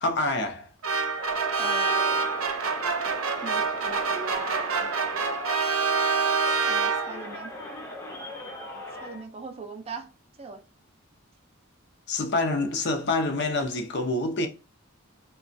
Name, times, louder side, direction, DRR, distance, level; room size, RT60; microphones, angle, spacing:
voice 1, 0.0-0.7 12.1-14.5, left 2 dB, 55° left, 0.6 m, -26 dB
sound 1, 0.8-7.4, right 4 dB, 85° right, 0.6 m, -26 dB
Crowd, 1.1-9.3, left 1 dB, 15° left, 0.6 m, -39 dB
voice 2, 1.6-2.2 3.4-5.0 6.7-7.5 8.8-10.1 10.4-10.6, right 4 dB, 30° right, 0.4 m, -39 dB
2.9 x 2.2 x 2.5 m
head